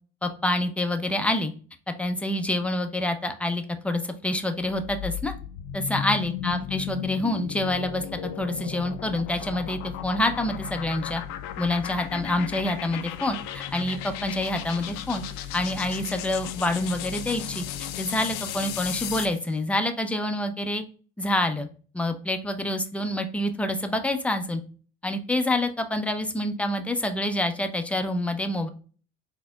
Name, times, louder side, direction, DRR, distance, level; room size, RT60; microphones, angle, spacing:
voice 1, 0.2-1.5 1.9-5.4 5.7-8.0 8.4-11.2 11.6-15.2 15.5-20.8 21.2-21.7 21.9-24.6 25.0-28.7, left 1 dB, 5° left, 6 dB, 0.5 m, -27 dB
sound 1, 4.7-19.4, left 10 dB, 70° left, 0.5 m, -35 dB
4.0 x 2.8 x 2.2 m, 0.40 s
hypercardioid pair, 65°, 34 cm